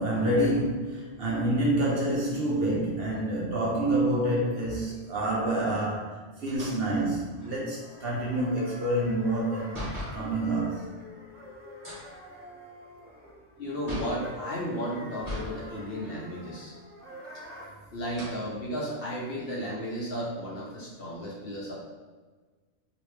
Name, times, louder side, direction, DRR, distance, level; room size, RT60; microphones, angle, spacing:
voice 1, 0.0-9.8 10.1-10.9, right 1 dB, 55° right, -4 dB, 0.9 m, -27 dB
sound 1, 6.5-10.3 11.7-14.3 15.2-15.6 16.0-16.1 17.1-17.7 18.0-18.4 19.1-19.2 19.6-21.0, left 1 dB, 15° right, 1.5 m, -40 dB
sound 2, 7.4-17.7, left 1 dB, ahead, 0.9 m, -46 dB
voice 2, 13.6-16.7 17.9-21.7, equal, 55° left, -5 dB, 1.0 m, -34 dB
3.1 x 3.0 x 3.1 m, 1.4 s
omnidirectional pair, 1.3 m